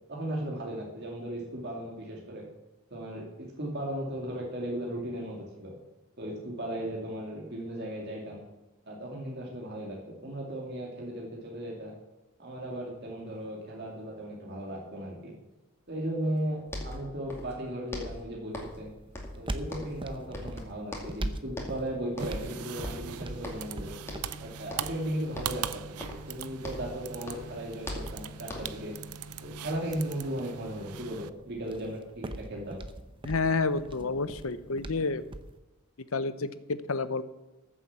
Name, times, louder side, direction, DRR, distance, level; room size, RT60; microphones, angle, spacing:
voice 1, 0.1-2.5 2.9-5.7 6.2-8.4 8.9-11.9 12.4-15.3 15.9-18.9 19.3-23.9 24.4-25.9 26.3-29.0 29.4-32.8, right 1 dB, 45° right, -2 dB, 2.6 m, -36 dB
sound 1, 16.4-16.5 16.7-17.6 17.9-18.9 19.1-20.1 20.3-21.2 21.5-21.8 22.2-22.5 22.8-23.8 24.1-24.4 24.7-25.0 25.3-27.0 27.2-28.9, left 1 dB, 10° left, 2.3 m, -41 dB
sound 2, 18.5-35.6, right 1 dB, 20° right, 0.8 m, -43 dB
sound 3, 22.2-31.3, right 8 dB, 85° right, 0.6 m, -41 dB
voice 2, 33.2-35.2 36.1-37.2, left 3 dB, 65° left, 13 dB, 0.8 m, -29 dB
14.0 x 7.3 x 7.3 m, 1.0 s
head